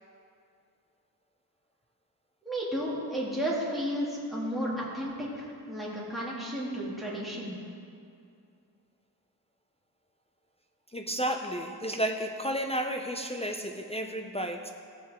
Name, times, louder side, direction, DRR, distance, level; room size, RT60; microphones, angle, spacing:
voice 1, 2.4-7.5, equal, ahead, -7 dB, 2.4 m, -33 dB
voice 2, 10.9-14.7, right 1 dB, 15° left, 3 dB, 0.4 m, -32 dB
16.0 x 7.3 x 3.6 m, 2.4 s
wide cardioid pair, 145°, 41 cm